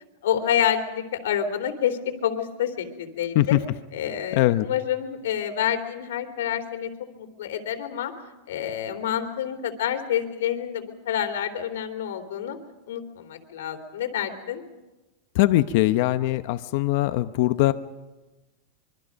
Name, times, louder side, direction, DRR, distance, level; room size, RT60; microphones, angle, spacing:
voice 1, 0.2-3.6 3.9-6.9 7.2-8.1 8.5-12.6 12.9-14.6, left 9 dB, 85° left, 5 dB, 3.2 m, -28 dB
voice 2, 15.3-17.7, left 16 dB, 50° left, 11 dB, 0.8 m, -21 dB
25.0 x 24.0 x 5.3 m, 1.1 s
supercardioid pair, 165°, 0 cm